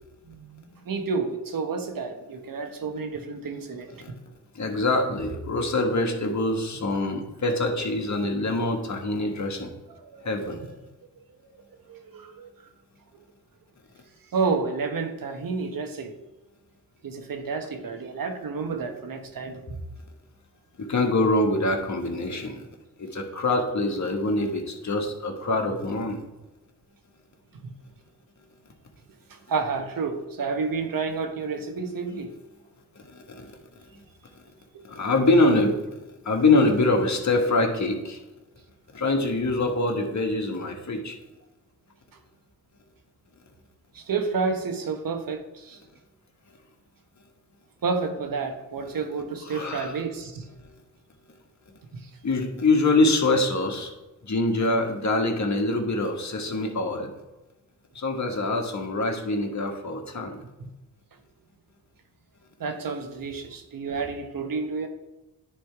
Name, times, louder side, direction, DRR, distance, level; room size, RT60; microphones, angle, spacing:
voice 1, 0.3-4.1 10.0-10.8 11.4-11.5 11.9-12.5 14.3-16.1 17.0-19.8 27.6-27.7 29.3-32.3 43.9-45.8 47.8-50.5 51.9-52.1 60.6-60.7 62.6-64.9, right 4 dB, 60° right, 5 dB, 1.2 m, -30 dB
voice 2, 4.5-9.7 10.2-10.6 20.8-22.7 23.0-26.2 33.1-33.6 34.8-35.8 36.2-38.2 38.9-41.1 49.4-50.0 52.2-53.9 54.2-57.1 57.9-60.4, left 2 dB, 45° left, 2 dB, 1.6 m, -24 dB
9.8 x 3.4 x 4.7 m, 1.0 s
supercardioid pair, 50°, 39 cm